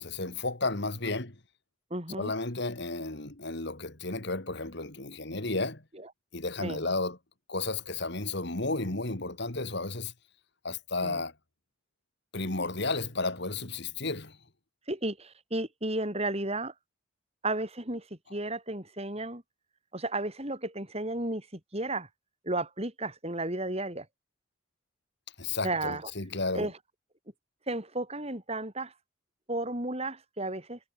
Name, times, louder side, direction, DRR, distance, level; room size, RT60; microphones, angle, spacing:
voice 1, 0.0-1.3 2.2-5.8 6.3-7.2 7.5-10.1 10.6-11.3 12.3-14.4 25.4-26.7, left 3 dB, 55° left, 2.5 m, -33 dB
voice 2, 1.9-2.3 5.9-6.1 6.6-6.8 11.0-11.2 14.9-16.7 17.4-19.4 19.9-22.1 22.4-24.1 25.6-26.1 26.5-26.7 27.7-28.9 29.5-30.8, right 2 dB, 30° right, 7.6 m, -33 dB
head